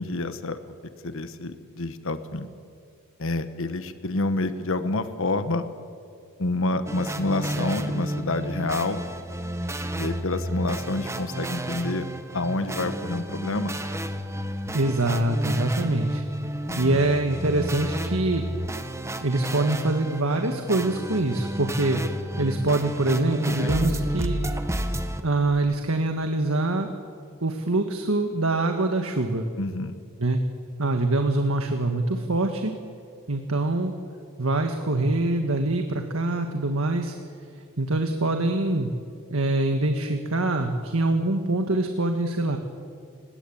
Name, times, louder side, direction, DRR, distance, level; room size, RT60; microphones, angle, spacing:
voice 1, 0.0-2.5 3.2-5.7 6.4-9.0 10.0-12.0 12.3-13.7 16.7-17.0 23.4-24.1 29.6-30.0, left 2 dB, 65° left, 10 dB, 1.3 m, -28 dB
sound 1, 6.9-25.2, right 1 dB, 15° right, 1.5 m, -31 dB
voice 2, 14.7-16.2 16.8-18.4 19.2-22.0 22.4-24.4 25.2-26.9 27.4-29.5 30.2-30.4 30.8-32.7 33.3-33.9 34.4-37.2 37.8-38.9 39.3-42.6, right 2 dB, 70° right, 5 dB, 1.7 m, -24 dB
30.0 x 18.0 x 8.7 m, 2.3 s
head